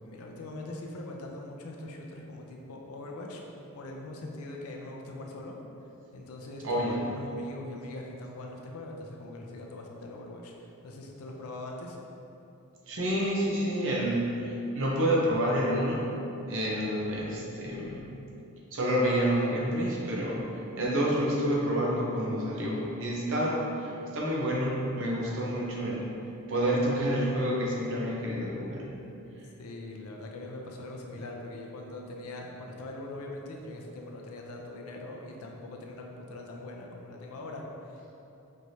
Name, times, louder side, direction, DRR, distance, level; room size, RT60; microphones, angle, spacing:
voice 1, 0.0-3.4 3.7-5.6 6.1-10.5 10.8-12.0 29.6-38.1, left 2 dB, 75° left, 0 dB, 0.5 m, -42 dB
voice 2, 6.6-7.0 12.9-16.0 16.4-18.0 18.7-20.4 20.8-26.1 26.5-28.8, equal, 60° right, -4 dB, 0.7 m, -28 dB
4.6 x 3.1 x 2.7 m, 2.9 s
head